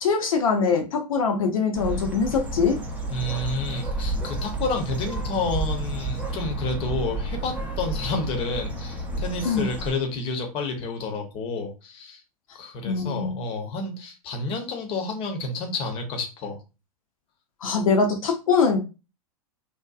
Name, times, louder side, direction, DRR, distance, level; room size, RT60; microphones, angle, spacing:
voice 1, 0.0-2.8 9.4-9.6 12.9-13.4 17.6-18.8, left 5 dB, 65° left, 3 dB, 0.6 m, -23 dB
Bird, 1.7-9.9, right 2 dB, 10° right, 0.5 m, -31 dB
voice 2, 3.1-12.2 12.5-16.6, left 3 dB, 30° left, 4 dB, 0.7 m, -30 dB
2.7 x 2.1 x 2.3 m, 0.30 s
figure-of-eight pair, 100°, 19 cm